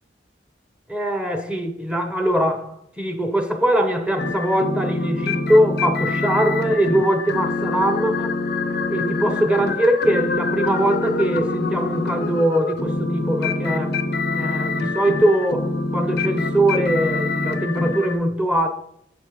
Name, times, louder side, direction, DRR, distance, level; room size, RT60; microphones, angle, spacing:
voice 1, 0.9-8.4 8.9-14.0 14.3-18.7, right 1 dB, 5° right, 0.9 m, -21 dB
sound 1, 4.2-18.1, left 3 dB, 65° left, 0.7 m, -25 dB
8.5 x 6.6 x 3.1 m
head